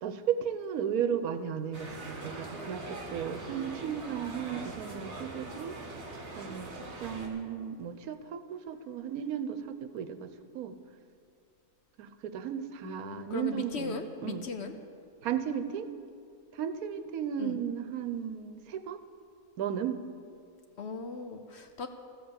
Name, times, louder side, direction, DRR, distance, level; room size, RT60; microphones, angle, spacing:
voice 1, 0.0-5.8 6.3-10.8 12.0-14.5 15.2-15.9 16.5-19.0 19.6-20.0, right 8 dB, 80° right, 10 dB, 1.2 m, -35 dB
sound 1, 1.7-7.3, right 2 dB, 50° right, 2.0 m, -42 dB
voice 2, 12.8-14.7 17.4-17.6 20.8-21.9, left 4 dB, 55° left, 7 dB, 0.9 m, -38 dB
14.5 x 7.7 x 6.9 m, 2.3 s
omnidirectional pair, 1.5 m